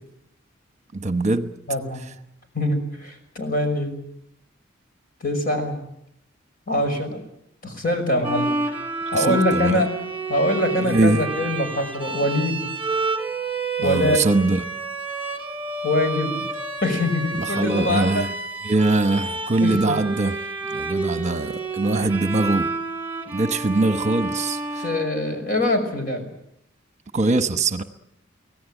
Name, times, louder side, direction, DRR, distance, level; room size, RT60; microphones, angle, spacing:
voice 1, 0.9-1.6 9.1-9.8 10.8-11.2 13.8-14.6 17.4-18.3 18.6-20.4 20.7-22.7 23.3-24.8 27.1-27.8, right 2 dB, 35° right, 1.1 m, -22 dB
voice 2, 1.7-2.0 2.5-4.0 5.2-5.8 6.7-7.2 7.6-8.5 9.1-9.9 10.3-12.6 13.8-14.2 15.8-16.4 16.8-18.3 19.6-20.0 24.8-26.3, left 1 dB, 45° left, 5.8 m, -23 dB
Bowed string instrument, 8.2-25.6, right 3 dB, 10° right, 3.5 m, -29 dB
25.0 x 17.5 x 9.0 m
head